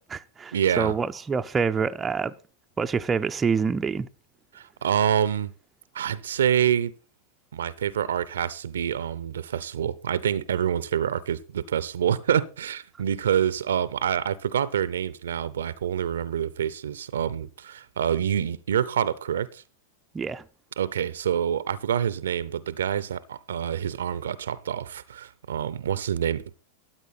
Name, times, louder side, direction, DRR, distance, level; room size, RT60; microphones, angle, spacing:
voice 1, 0.0-2.3 2.8-4.1 20.1-20.4, right 5 dB, 20° right, 0.5 m, -26 dB
voice 2, 0.5-0.9 4.5-5.5 5.9-6.9 7.5-19.6 20.8-26.6, right 9 dB, 70° right, 0.6 m, -27 dB
13.0 x 9.2 x 4.1 m
figure-of-eight pair, 95°, 0 cm